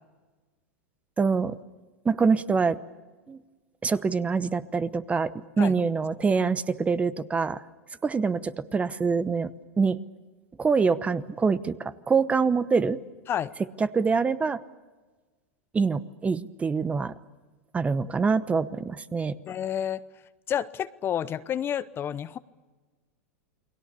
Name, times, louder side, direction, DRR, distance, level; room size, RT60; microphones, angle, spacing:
voice 1, 1.2-1.6 2.0-2.8 3.3-3.4 3.8-5.3 5.6-7.6 8.0-9.5 9.8-10.0 10.6-13.0 13.8-14.6 15.7-17.1 17.7-19.4, right 5 dB, 15° right, 15 dB, 0.9 m, -25 dB
voice 2, 19.5-20.0 20.5-22.4, left 9 dB, 30° left, 14 dB, 0.8 m, -29 dB
29.5 x 21.5 x 6.9 m, 1.3 s
hypercardioid pair, 110°, 8 cm